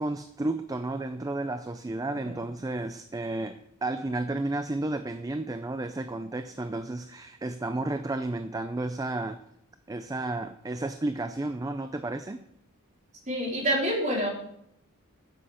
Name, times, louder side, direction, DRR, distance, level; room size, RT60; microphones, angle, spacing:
voice 1, 0.0-9.4 9.9-12.4, right 2 dB, 15° right, 9 dB, 0.4 m, -32 dB
voice 2, 13.3-14.3, equal, 35° right, -3 dB, 3.8 m, -27 dB
9.9 x 7.7 x 6.3 m, 0.74 s
head